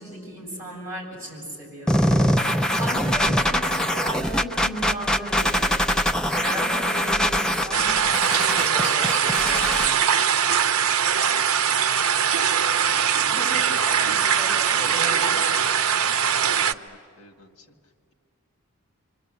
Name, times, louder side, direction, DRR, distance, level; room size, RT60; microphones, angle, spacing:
voice 1, 0.0-2.2 2.8-5.7 6.3-7.9 8.3-9.9 13.2-13.7 14.0-15.2, equal, 15° right, -4 dB, 7.2 m, -35 dB
sound 1, 1.9-9.9, equal, 5° left, 0.6 m, -23 dB
sound 2, 7.7-16.7, right 8 dB, 85° right, 0.6 m, -21 dB
voice 2, 10.6-11.0 11.3-11.8 12.8-14.3 14.7-15.7 16.0-17.8, left 1 dB, 60° left, 5 dB, 1.9 m, -48 dB
26.0 x 25.5 x 8.3 m, 2.2 s
head